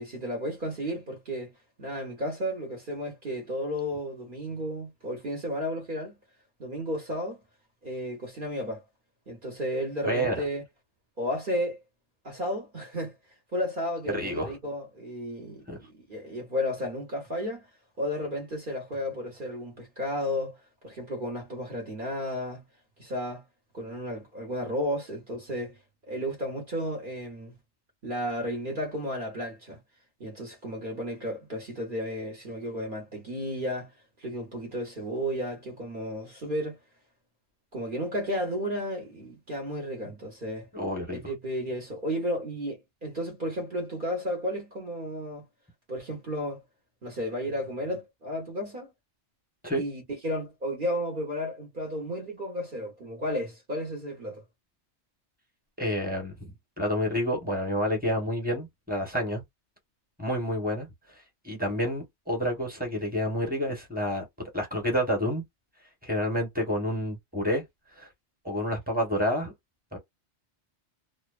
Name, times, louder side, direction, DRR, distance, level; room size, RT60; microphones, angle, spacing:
voice 1, 0.0-1.5 1.8-6.2 6.6-7.4 7.8-8.8 9.3-10.6 11.2-11.8 12.2-13.1 13.5-17.7 18.0-20.6 20.8-22.6 23.0-23.4 23.7-25.8 26.1-27.6 28.0-29.8 30.2-33.9 34.2-36.8 37.7-40.7 41.1-45.5 45.9-46.6 47.0-48.9 49.7-54.4, equal, 50° right, 1.0 m, -33 dB
voice 2, 10.0-10.4 14.1-14.5 15.7-15.8 40.7-41.2 49.6-49.8 55.8-59.4 60.2-60.9 61.4-65.4 66.0-67.6 68.0-68.1 68.4-69.5 69.9-70.0, equal, 10° right, 1.1 m, -29 dB
2.8 x 2.0 x 2.3 m
omnidirectional pair, 1.1 m